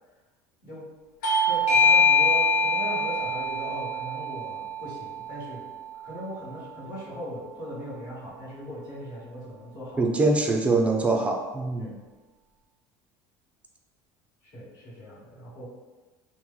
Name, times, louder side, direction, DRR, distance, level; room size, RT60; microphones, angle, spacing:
Bell / Doorbell, 1.2-6.4, left 2 dB, 80° left, 0.7 m, -24 dB
voice 1, 1.4-5.7 6.0-10.0 11.8-11.9 14.4-15.6, equal, 50° left, -8 dB, 1.4 m, -39 dB
voice 2, 10.0-12.0, right 3 dB, 15° right, 2 dB, 0.4 m, -23 dB
2.9 x 2.1 x 3.8 m, 1.2 s
supercardioid pair, 110°, 9 cm